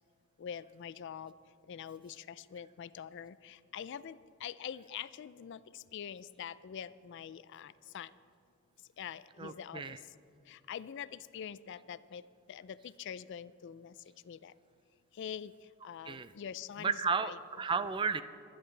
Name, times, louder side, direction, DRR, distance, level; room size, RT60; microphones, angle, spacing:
voice 1, 0.4-1.3 1.7-8.1 9.0-10.0 10.5-12.2 12.5-13.9 14.3-14.5 15.2-15.5 15.8-17.4, left 8 dB, 60° left, 16 dB, 0.3 m, -44 dB
voice 2, 9.4-10.0 16.1-16.3 16.8-18.2, right 5 dB, 25° right, 12 dB, 0.3 m, -33 dB
24.0 x 10.5 x 3.3 m, 2.5 s
head